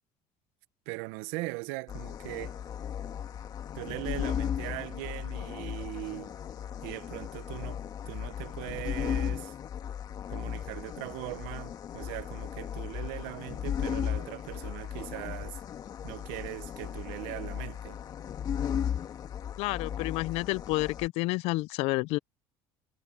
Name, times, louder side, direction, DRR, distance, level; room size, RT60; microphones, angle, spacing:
voice 1, 0.9-2.6 3.7-6.3 6.8-9.5 10.3-15.6 16.0-18.0, right 22 dB, 85° right, 0.9 m, -40 dB
sound 1, 1.9-21.1, left 9 dB, 40° left, 2.0 m, -36 dB
voice 2, 19.6-22.2, left 21 dB, 70° left, 0.4 m, -30 dB
cardioid pair, 135°, 11 cm